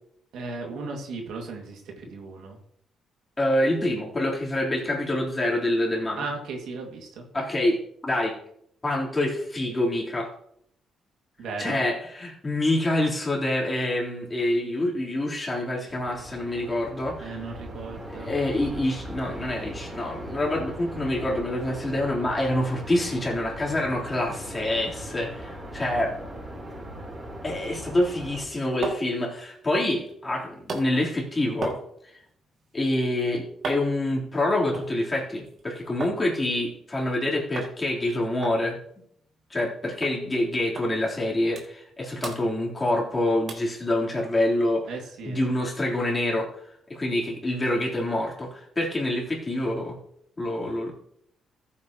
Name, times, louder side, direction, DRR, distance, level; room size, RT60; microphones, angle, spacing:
voice 1, 0.3-2.6 6.2-7.3 11.4-11.8 17.2-18.3 44.9-45.4, right 3 dB, 80° right, 2 dB, 2.3 m, -36 dB
voice 2, 3.4-6.2 7.3-8.4 8.8-10.3 11.6-17.4 18.2-26.1 27.4-31.8 32.7-38.8 39.5-44.9 45.2-46.5 46.9-50.0 50.4-50.9, left 1 dB, 25° left, -3 dB, 3.8 m, -26 dB
sound 1, 15.9-28.4, right 1 dB, 25° right, 5.1 m, -39 dB
sound 2, 28.6-36.2 36.5-37.2 37.6-37.8 38.0-38.1 38.4-39.7 40.0-40.2 40.8-40.9 41.3-41.9 42.2-43.1 43.5-43.8 44.3-44.4, right 3 dB, 55° right, 2.4 m, -38 dB
14.5 x 8.5 x 3.1 m, 0.69 s
cardioid pair, 90°, 0 cm